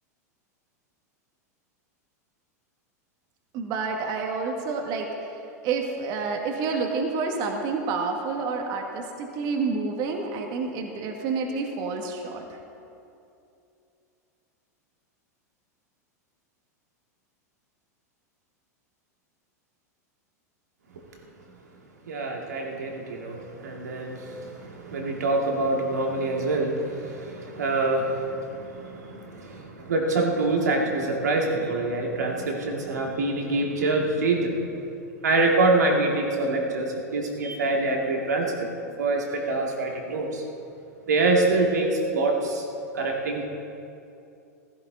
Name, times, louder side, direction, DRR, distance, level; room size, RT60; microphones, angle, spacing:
voice 1, 3.5-12.5, right 4 dB, 50° right, 2 dB, 1.9 m, -29 dB
voice 2, 22.1-34.8 35.2-38.5 39.0-40.4 41.1-42.6 42.9-43.4, right 2 dB, 80° right, 0 dB, 2.4 m, -25 dB
16.0 x 15.0 x 4.1 m, 2.6 s
hypercardioid pair, 100°, 9 cm